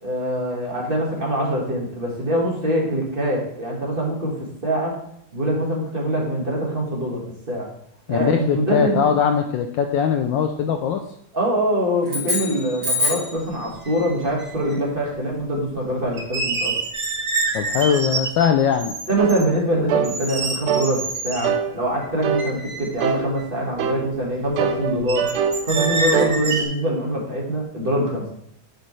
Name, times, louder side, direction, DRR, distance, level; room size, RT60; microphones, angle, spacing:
voice 1, 0.0-5.0 5.3-7.7 8.1-9.0 11.3-16.8 19.1-25.3 25.6-28.3, right 1 dB, 30° right, -3 dB, 1.6 m, -24 dB
voice 2, 8.1-11.0 17.5-18.9, left 7 dB, 75° left, 6 dB, 1.1 m, -20 dB
sound 1, 12.0-13.4, left 2 dB, 60° right, 3.0 m, -24 dB
sound 2, 13.5-13.6 13.8-14.8 16.1-19.4 20.0-21.5 22.0-22.1 22.4-23.4 25.1-26.6, right 3 dB, 45° right, 0.7 m, -27 dB
sound 3, 19.2-19.4 19.9-20.1 20.7-20.9 21.4-21.7 22.2-22.5 23.0-23.3 23.8-24.0 24.6-26.4, right 7 dB, 85° right, 1.6 m, -22 dB
9.8 x 5.3 x 3.1 m, 0.72 s
omnidirectional pair, 2.3 m